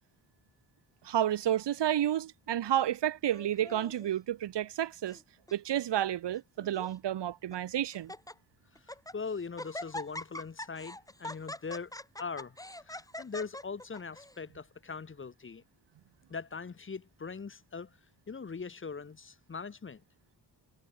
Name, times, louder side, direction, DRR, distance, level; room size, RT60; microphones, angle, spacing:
voice 1, 1.0-5.2 5.5-8.1, right 11 dB, 90° right, 0.9 m, -30 dB
Laughter, 3.3-4.1 4.8-5.2 5.5-5.6 6.3-7.0 7.5-7.6 7.9-8.3 8.8-9.2 9.6-14.4, left 1 dB, 10° left, 1.5 m, -43 dB
voice 2, 8.7-15.6 16.3-18.0 18.3-20.0, left 5 dB, 30° left, 0.8 m, -41 dB
wide cardioid pair, 95°, 40 cm